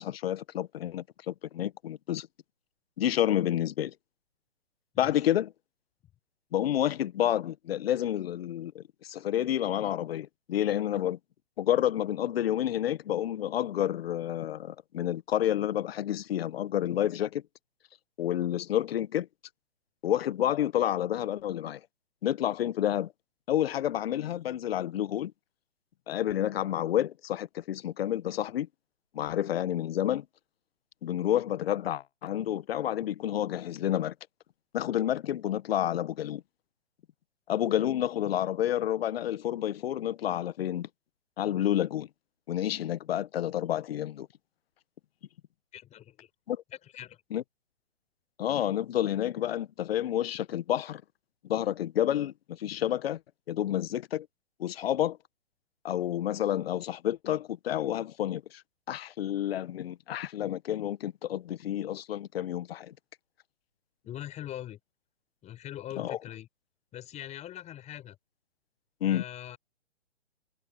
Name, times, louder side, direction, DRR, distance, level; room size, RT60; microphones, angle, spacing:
voice 1, 0.0-2.3 3.0-3.9 5.0-5.5 6.5-11.2 11.6-17.4 18.2-19.3 20.0-21.8 22.2-23.1 23.5-25.3 26.1-28.7 29.1-30.2 31.0-34.1 34.7-36.4 37.5-40.9 41.4-42.1 42.5-44.3 46.5-46.6 47.3-47.4 48.4-51.0 51.4-53.2 53.5-54.3 54.6-55.2 55.8-58.6 58.9-62.9 66.0-66.2 69.0-69.2, left 11 dB, 55° left, 1.0 m, -29 dB
voice 2, 4.9-5.3 45.7-46.3 46.7-47.2 64.1-64.8 65.4-66.5 66.9-68.2 69.0-69.6, left 12 dB, 20° left, 5.3 m, -42 dB
hypercardioid pair, 140°, 36 cm